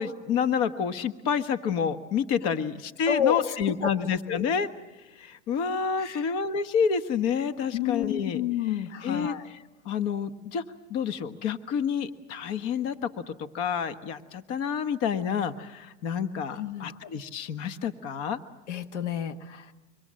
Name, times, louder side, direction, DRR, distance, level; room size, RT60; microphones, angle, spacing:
voice 1, 0.0-4.7 5.1-8.4 9.0-9.6 9.8-10.6 10.9-18.4, left 7 dB, 45° left, 11 dB, 1.4 m, -29 dB
voice 2, 3.1-3.9 4.3-4.4 6.0-6.2 7.7-9.5 16.5-17.0 18.7-19.7, left 9 dB, 80° left, 11 dB, 1.4 m, -30 dB
25.5 x 24.5 x 7.6 m, 1.1 s
hypercardioid pair, 125°, 34 cm